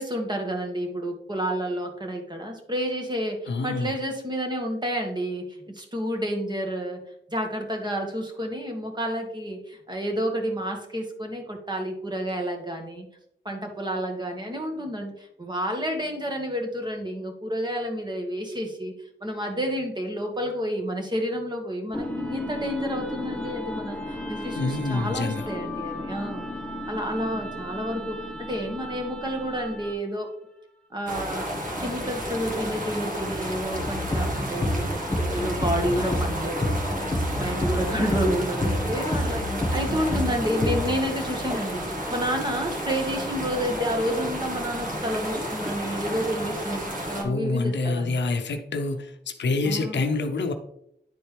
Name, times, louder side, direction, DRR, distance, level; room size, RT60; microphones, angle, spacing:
voice 1, 0.0-7.0 7.3-13.1 13.5-18.9 19.2-26.5 26.9-30.3 30.9-31.5 31.8-37.0 37.4-48.2 49.6-50.0, equal, 25° right, 2 dB, 1.7 m, -30 dB
voice 2, 3.5-3.9 24.6-25.4 47.2-49.1 49.4-50.5, left 3 dB, 80° left, 6 dB, 0.8 m, -26 dB
sound 1, 21.9-30.1, left 1 dB, 5° left, 1.3 m, -35 dB
sound 2, 31.1-47.2, equal, 45° right, 1.6 m, -32 dB
sound 3, 33.7-41.0, left 1 dB, 25° left, 1.4 m, -28 dB
10.0 x 4.3 x 3.3 m, 0.76 s
cardioid pair, 65°, 18 cm